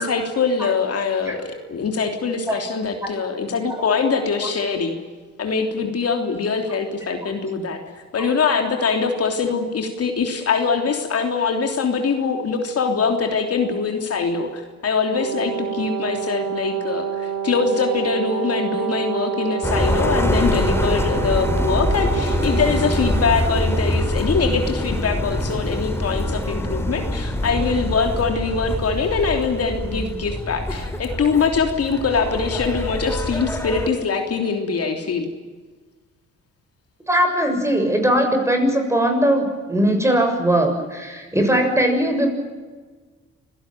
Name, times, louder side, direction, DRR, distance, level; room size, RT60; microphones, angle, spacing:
voice 1, 0.0-5.0 5.4-7.8 8.1-35.3, left 5 dB, 50° left, 4 dB, 3.3 m, -23 dB
Brass instrument, 15.1-23.8, right 9 dB, 85° right, 6.8 m, -28 dB
sound 1, 19.6-33.9, left 1 dB, 10° left, 3.2 m, -24 dB
voice 2, 37.1-42.3, right 1 dB, 10° right, 4 dB, 7.0 m, -19 dB
26.0 x 17.5 x 9.2 m, 1.4 s
cardioid pair, 90°, 30 cm